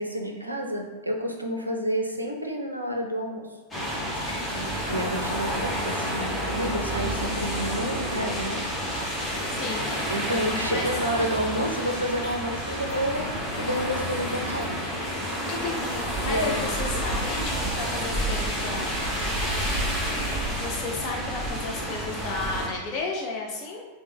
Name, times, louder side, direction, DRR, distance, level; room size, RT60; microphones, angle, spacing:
voice 1, 0.0-3.5 4.5-8.6 10.1-14.8 16.2-16.7, equal, 85° right, 1 dB, 0.4 m, -29 dB
sound 1, 3.7-22.7, equal, 10° left, 0.9 m, -29 dB
Raindrop / Water tap faucet / Drip, 4.1-4.4 4.9-5.2 5.7-6.0 6.5-6.9 7.3-7.5 8.1-8.3 8.9-9.1 9.7-9.9 10.5-10.8 11.3-11.5 12.1-12.3 12.9-13.2 13.7-14.0 14.5-14.7, equal, 90° left, 0.9 m, -41 dB
voice 2, 9.5-9.9 10.7-10.9 15.5-19.2 20.5-23.9, left 3 dB, 40° left, 0 dB, 0.4 m, -33 dB
3.2 x 2.0 x 3.3 m, 1.4 s
figure-of-eight pair, 90°, 0 cm